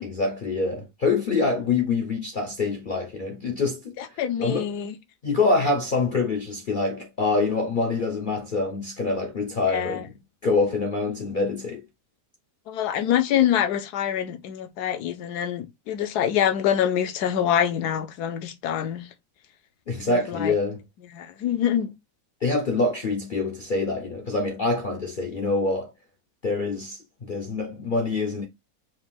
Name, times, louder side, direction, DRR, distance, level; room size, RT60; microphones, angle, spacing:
voice 1, 0.0-4.7 5.2-10.1 10.4-11.8 19.9-20.8 22.4-25.9 26.4-28.4, left 3 dB, 60° left, 0.5 m, -25 dB
voice 2, 4.0-4.9 9.6-10.0 12.7-19.1 20.1-20.6 21.1-21.9, left 10 dB, 75° left, 1.2 m, -25 dB
5.1 x 2.4 x 3.5 m
omnidirectional pair, 1.7 m